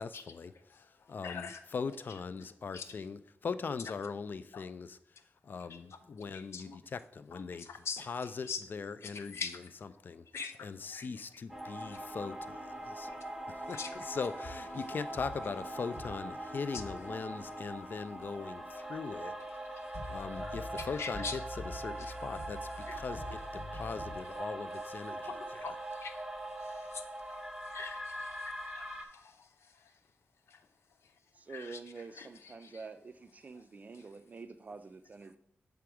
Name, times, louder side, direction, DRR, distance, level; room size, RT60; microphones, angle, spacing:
voice 1, 0.0-1.5 1.7-5.0 5.4-7.7 8.1-9.4 10.0-10.2 10.6-13.1 13.5-19.3 20.1-21.4 21.7-25.3, left 5 dB, 45° left, 0.3 m, -40 dB
voice 2, 0.5-1.6 2.1-2.9 4.5-4.6 5.7-6.0 6.3-6.8 7.3-8.6 9.0-10.0 10.3-11.1 11.8-12.2 12.8-14.1 16.7-16.8 18.7-18.9 19.7-21.4 22.0-22.1 22.8-23.1 23.4-23.5 25.0-30.0 30.5-30.7 31.0-31.1 31.5-32.9 33.6-33.7 33.9-34.1, left 5 dB, 90° left, 0.6 m, -46 dB
sound 1, 11.5-29.0, right 1 dB, 10° right, 0.7 m, -42 dB
sound 2, 14.4-15.6 15.9-16.4 16.7-19.2 19.5-19.6 19.9-24.4, left 1 dB, 65° left, 2.2 m, -47 dB
voice 3, 31.3-35.4, right 4 dB, 35° right, 0.4 m, -47 dB
7.5 x 3.5 x 4.7 m
wide cardioid pair, 145°, 4 cm